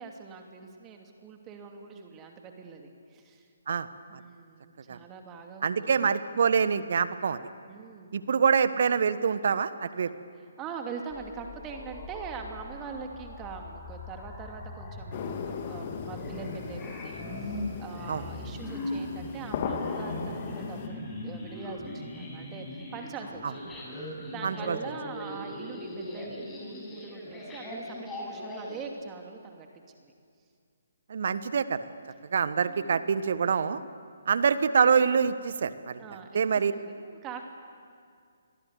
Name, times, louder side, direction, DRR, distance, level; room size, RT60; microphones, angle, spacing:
voice 1, 0.0-3.5 4.1-6.0 7.7-8.1 10.3-29.7 30.0-30.1 32.7-33.1 36.0-37.4, right 5 dB, 20° right, 3 dB, 2.6 m, -43 dB
voice 2, 5.6-7.4 8.1-10.1 18.1-18.2 24.4-24.8 31.1-31.8 32.3-33.8 34.3-36.0 36.3-36.7, right 6 dB, 55° right, 13 dB, 1.4 m, -25 dB
sound 1, 11.1-28.8, left 1 dB, 10° left, 6.4 m, -39 dB
sound 2, 15.1-20.9, left 6 dB, 35° left, 2.8 m, -37 dB
30.0 x 23.0 x 8.4 m, 2.2 s
figure-of-eight pair, 135°, 0 cm